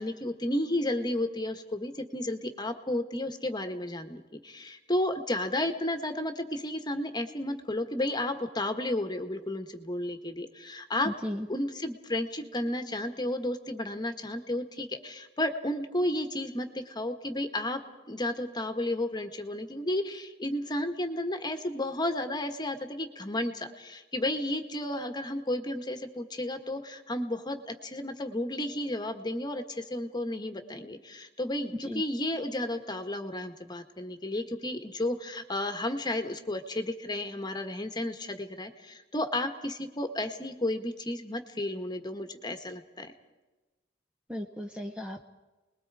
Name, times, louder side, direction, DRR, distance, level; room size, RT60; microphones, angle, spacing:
voice 1, 0.0-11.1 11.5-17.8 18.1-43.1, left 1 dB, 20° left, 8 dB, 1.5 m, -32 dB
voice 2, 11.0-11.5 31.8-32.0 44.3-45.2, left 1 dB, 5° right, 4 dB, 1.0 m, -35 dB
29.5 x 21.0 x 4.9 m, 1.1 s
head